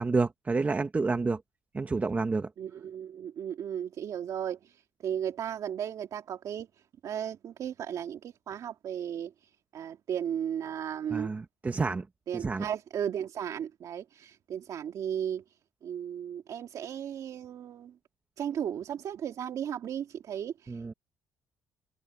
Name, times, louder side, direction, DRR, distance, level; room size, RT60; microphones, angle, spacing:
voice 1, 0.0-1.4 1.7-2.5 11.1-12.0 12.3-12.6 20.7-20.9, right 3 dB, 25° right, 1.3 m, -29 dB
voice 2, 2.6-11.3 12.3-18.0 18.4-20.9, right 9 dB, 60° right, 2.2 m, -35 dB
cardioid pair, 110°, 7 cm